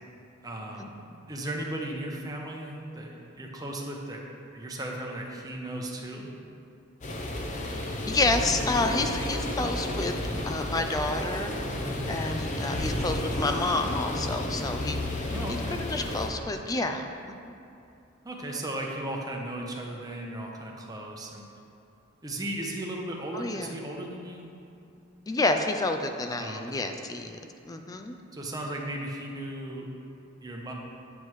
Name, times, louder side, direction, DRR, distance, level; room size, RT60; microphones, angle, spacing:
voice 1, 0.4-4.2 4.5-6.3 11.8-12.1 15.3-15.8 18.2-21.4 22.2-24.5 26.4-26.8 28.3-29.9 30.4-30.7, right 1 dB, 20° right, -1 dB, 0.8 m, -36 dB
sound 1, 7.0-16.3, left 1 dB, 35° left, 0.8 m, -32 dB
voice 2, 8.1-10.1 10.4-11.5 12.1-15.3 15.8-17.6 23.3-23.7 25.3-27.4 27.7-28.2, left 2 dB, 20° left, 5 dB, 0.3 m, -29 dB
8.1 x 7.5 x 3.1 m, 2.7 s
head